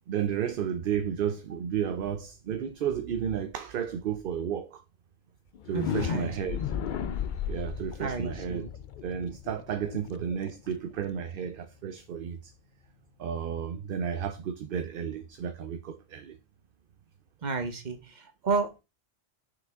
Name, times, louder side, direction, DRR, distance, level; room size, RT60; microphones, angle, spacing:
voice 1, 0.1-4.8 5.6-6.7 7.5-8.7 9.0-12.5 13.2-16.4, right 8 dB, 60° right, 0.7 m, -32 dB
sound 1, 5.5-11.4, left 8 dB, 60° left, 0.5 m, -35 dB
voice 2, 5.7-6.4 8.0-8.7 17.4-18.8, right 4 dB, 40° right, 1.1 m, -32 dB
6.1 x 5.0 x 3.5 m
omnidirectional pair, 1.2 m